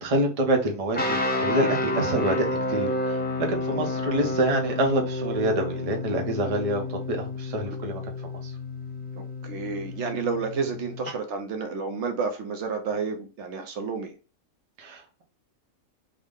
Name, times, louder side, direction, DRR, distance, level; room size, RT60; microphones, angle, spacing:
voice 1, 0.0-8.5 14.8-15.2, right 1 dB, 35° right, 0.6 m, -27 dB
sound 1, 0.9-11.1, left 2 dB, 15° left, 0.3 m, -30 dB
voice 2, 9.2-14.1, right 5 dB, 65° right, 0.8 m, -31 dB
3.7 x 2.1 x 3.5 m
omnidirectional pair, 1.5 m